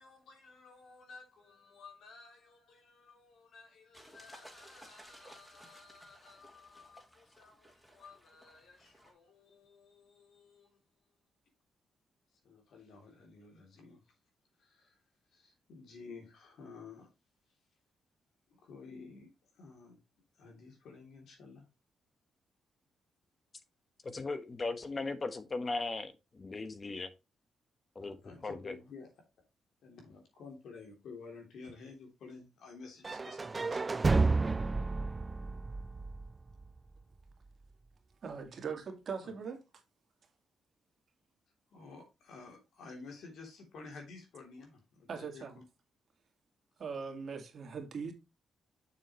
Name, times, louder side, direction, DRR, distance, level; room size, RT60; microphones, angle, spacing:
voice 1, 0.0-10.8 12.4-14.1 14.6-15.0 15.3-17.1 18.5-20.0 20.3-21.7 28.0-29.1 29.8-33.8 39.2-39.3 41.7-45.4, left 4 dB, 75° left, 3.1 m, -53 dB
sound 1, 3.9-9.1, right 1 dB, ahead, 2.8 m, -57 dB
voice 2, 24.0-27.1 27.9-28.2 28.4-28.7, left 3 dB, 35° left, 1.2 m, -37 dB
sound 2, 33.0-37.0, right 3 dB, 30° right, 0.4 m, -31 dB
voice 3, 38.2-39.6 45.1-45.6 46.8-48.1, right 5 dB, 60° right, 2.0 m, -40 dB
6.9 x 6.9 x 3.1 m
supercardioid pair, 65°, 0 cm